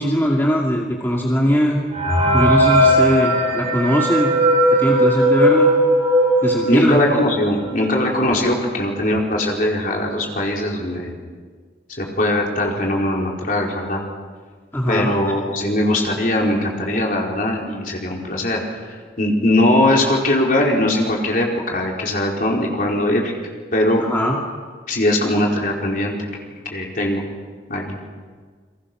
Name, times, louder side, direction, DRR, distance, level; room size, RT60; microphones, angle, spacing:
voice 1, 0.0-1.8 2.3-4.3 4.7-5.7 6.4-7.0 14.7-15.1 24.0-24.3, equal, 10° left, -2 dB, 2.4 m, -20 dB
sound 1, 1.9-7.4 7.8-7.9 8.1-8.3 9.0-9.1 9.5-9.8, equal, 35° right, 4.8 m, -17 dB
voice 2, 6.6-11.1 12.0-14.0 14.9-18.8 19.2-23.3 23.7-24.1 24.9-26.2 26.7-27.3 27.7-28.0, left 1 dB, 50° left, -1 dB, 4.8 m, -20 dB
29.5 x 23.0 x 6.2 m, 1.6 s
head